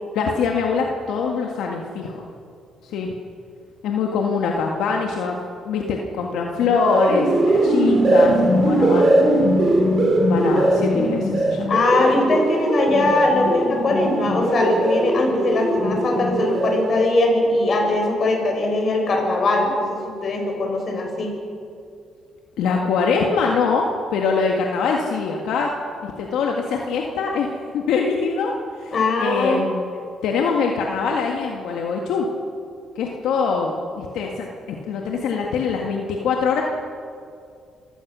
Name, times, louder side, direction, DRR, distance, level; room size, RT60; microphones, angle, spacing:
voice 1, 0.1-2.2 2.8-3.1 3.8-5.4 5.7-9.1 10.3-11.7 22.6-25.7 26.0-27.5 27.7-28.9 29.2-29.8 30.2-32.3 33.0-36.6, left 5 dB, 85° left, 0 dB, 1.8 m, -23 dB
sound 1, 6.5-17.1, right 1 dB, 45° right, 5.2 m, -20 dB
voice 2, 11.7-21.3 28.9-29.6, left 2 dB, 50° left, 1 dB, 6.3 m, -21 dB
26.0 x 16.5 x 6.3 m, 2.4 s
cardioid pair, 90°, 0 cm